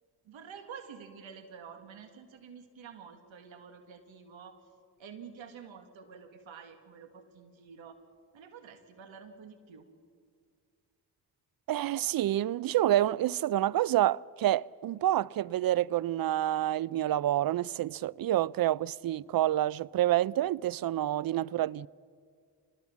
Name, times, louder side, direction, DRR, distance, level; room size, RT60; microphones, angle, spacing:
voice 1, 0.3-4.6 5.0-8.0 8.3-9.9, right 6 dB, 75° right, 1.9 m, -49 dB
voice 2, 11.7-21.9, right 13 dB, 50° right, 0.5 m, -28 dB
26.0 x 19.5 x 7.2 m
supercardioid pair, 50°, 46 cm